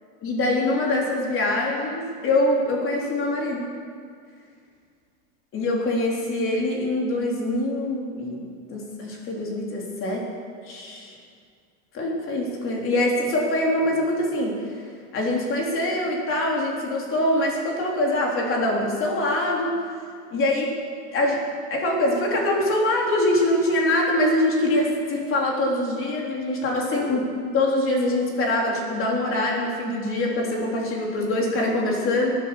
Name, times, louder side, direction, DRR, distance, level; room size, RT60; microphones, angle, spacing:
voice 1, 0.2-3.7 5.5-10.2 10.7-11.1 11.9-14.8 15.1-19.8 20.3-20.8 21.1-21.4 21.7-27.2 27.5-32.3, left 1 dB, 30° left, -1 dB, 3.8 m, -24 dB
18.0 x 10.5 x 7.2 m, 2.2 s
supercardioid pair, 140°, 40 cm